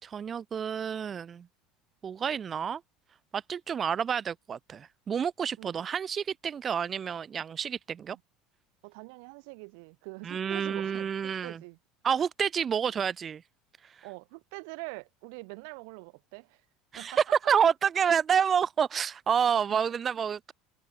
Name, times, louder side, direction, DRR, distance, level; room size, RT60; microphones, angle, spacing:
voice 1, 0.0-1.4 2.0-2.8 3.3-8.2 10.2-11.6 12.0-13.4 16.9-17.1 17.5-20.5, right 7 dB, 35° right, 3.2 m, -29 dB
voice 2, 8.8-11.8 14.0-16.7 17.0-17.4 19.7-19.8, right 33 dB, 75° right, 5.4 m, -44 dB
supercardioid pair, 100°, 0 cm